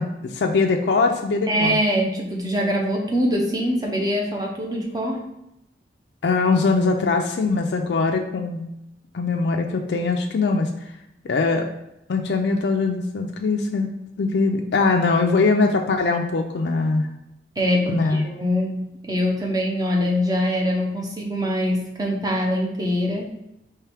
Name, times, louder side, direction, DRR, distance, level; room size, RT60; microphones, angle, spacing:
voice 1, 0.0-1.8 6.2-8.6 9.1-10.7 11.2-11.7 12.1-13.9 14.2-17.1 17.9-18.3, left 3 dB, 75° left, 3 dB, 0.4 m, -21 dB
voice 2, 1.5-5.2 17.6-23.3, equal, 20° right, 0 dB, 0.8 m, -23 dB
4.6 x 3.1 x 3.4 m, 0.86 s
head